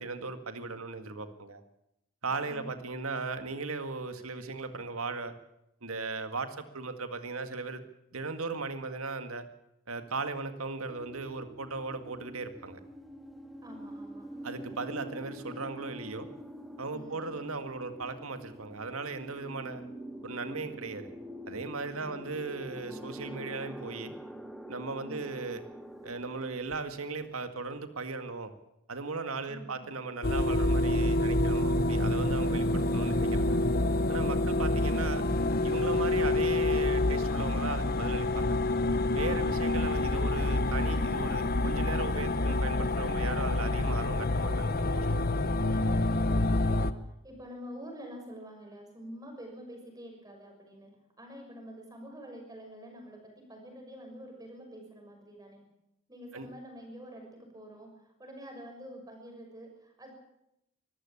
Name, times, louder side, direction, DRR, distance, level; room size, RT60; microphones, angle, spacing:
voice 1, 0.0-1.6 2.2-5.3 5.8-7.8 8.1-9.5 9.9-12.8 14.4-16.3 16.8-19.8 20.2-21.1 21.5-24.1 24.7-25.6 26.0-28.5 28.9-33.6 34.1-35.3 35.6-38.6 39.1-45.3 56.3-56.5, right 3 dB, 90° right, 9 dB, 2.0 m, -37 dB
voice 2, 2.4-2.7 13.6-14.3 16.9-17.5 22.0-22.3 25.0-25.4 29.5-29.9 46.4-46.9 47.2-55.6 56.1-60.1, equal, 15° right, 2 dB, 6.3 m, -47 dB
sound 1, 10.9-27.8, equal, ahead, 1.3 m, -46 dB
sound 2, 30.2-46.9, left 2 dB, 45° left, 0.9 m, -27 dB
24.0 x 14.5 x 8.6 m, 0.84 s
head